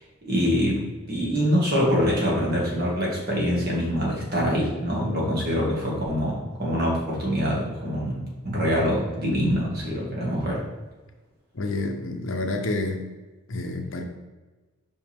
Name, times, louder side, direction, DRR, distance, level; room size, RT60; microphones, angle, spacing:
voice 1, 0.2-10.6, equal, 45° right, -4 dB, 1.9 m, -25 dB
voice 2, 11.5-13.0 13.5-14.0, left 2 dB, 60° left, 3 dB, 0.7 m, -28 dB
5.4 x 5.2 x 3.5 m, 1.2 s
head